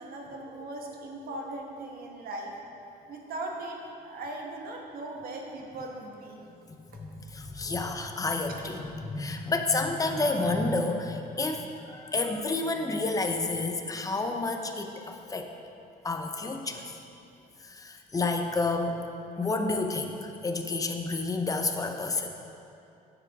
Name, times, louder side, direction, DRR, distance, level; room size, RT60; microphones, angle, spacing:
voice 1, 0.0-2.5 3.1-6.5 6.9-7.0, right 2 dB, 60° right, 0 dB, 1.3 m, -39 dB
voice 2, 6.9-15.5 16.0-16.9 17.6-19.0 19.4-22.3, left 3 dB, 20° left, 4 dB, 0.7 m, -30 dB
9.3 x 7.0 x 3.6 m, 2.7 s
cardioid pair, 110°, 17 cm